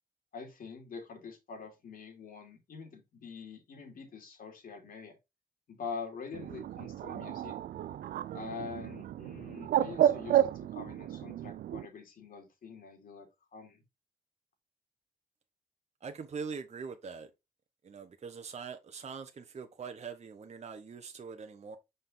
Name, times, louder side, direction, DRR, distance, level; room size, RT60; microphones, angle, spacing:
voice 1, 0.3-5.1 5.7-7.5 8.3-13.3 13.5-13.8, left 5 dB, 70° left, 3.0 m, -45 dB
Bird, 6.3-11.9, right 11 dB, 80° right, 0.5 m, -31 dB
voice 2, 16.0-17.3 17.8-21.8, right 5 dB, 45° right, 1.0 m, -43 dB
5.7 x 5.5 x 3.9 m
cardioid pair, 70°, 15 cm